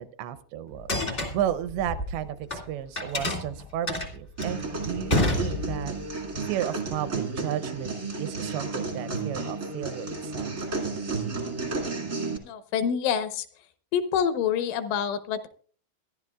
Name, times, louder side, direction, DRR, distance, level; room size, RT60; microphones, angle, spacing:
voice 1, 0.0-5.9 6.4-10.6, right 11 dB, 80° right, 11 dB, 2.8 m, -33 dB
sound 1, 0.7-2.6 2.9-6.0, left 2 dB, 55° left, 0.6 m, -29 dB
sound 2, 4.4-12.4, right 3 dB, 60° right, 0.8 m, -32 dB
voice 2, 12.4-13.5 13.9-15.5, left 8 dB, 85° left, 10 dB, 3.4 m, -27 dB
24.5 x 11.0 x 2.4 m, 0.43 s
omnidirectional pair, 5.4 m